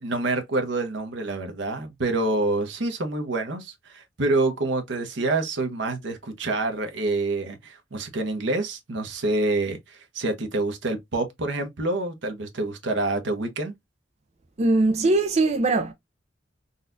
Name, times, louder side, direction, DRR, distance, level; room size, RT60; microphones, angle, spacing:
voice 1, 0.0-13.7, right 2 dB, 70° right, 0.9 m, -27 dB
voice 2, 14.6-15.9, right 2 dB, 35° right, 0.4 m, -21 dB
4.0 x 2.3 x 2.5 m
head